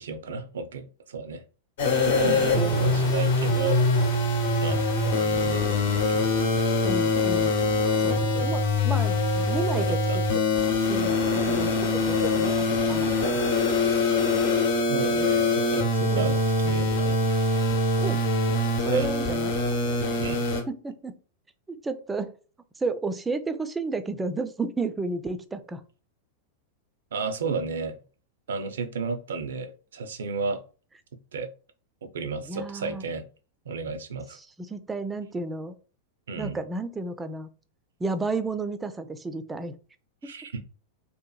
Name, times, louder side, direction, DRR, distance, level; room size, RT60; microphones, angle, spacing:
voice 1, 0.0-1.4 1.9-3.8 4.6-5.6 5.9-6.5 8.1-8.5 9.8-10.2 14.9-17.2 18.9-19.1 20.2-20.4 27.1-28.0 28.5-30.6 31.3-31.5 32.0-33.3 33.7-34.4 36.3-36.6 40.2-40.6, right 4 dB, 80° right, 0.4 m, -33 dB
sound 1, 1.8-20.6, left 2 dB, 65° left, 0.8 m, -24 dB
voice 2, 2.2-3.1 6.8-7.6 8.0-10.4 10.9-13.4 16.1-16.3 18.0-18.2 18.8-19.6 20.0-20.2 20.7-21.2 21.7-22.3 22.8-25.8 32.5-33.0 34.3-35.7 36.4-37.5 38.0-39.7 40.2-40.3, right 3 dB, 15° right, 0.3 m, -32 dB
2.7 x 2.5 x 2.3 m
hypercardioid pair, 105°, 0 cm